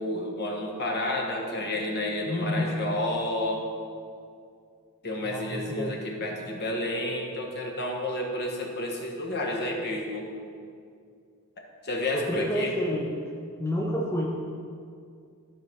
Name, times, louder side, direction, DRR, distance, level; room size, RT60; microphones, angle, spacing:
voice 1, 0.0-3.7 5.0-10.3 11.8-12.7, left 1 dB, 50° left, 1 dB, 1.3 m, -30 dB
voice 2, 2.3-2.7 5.2-5.9 12.1-13.1 13.6-14.3, left 1 dB, 10° left, -2 dB, 0.7 m, -29 dB
12.5 x 5.1 x 4.5 m, 2.3 s
head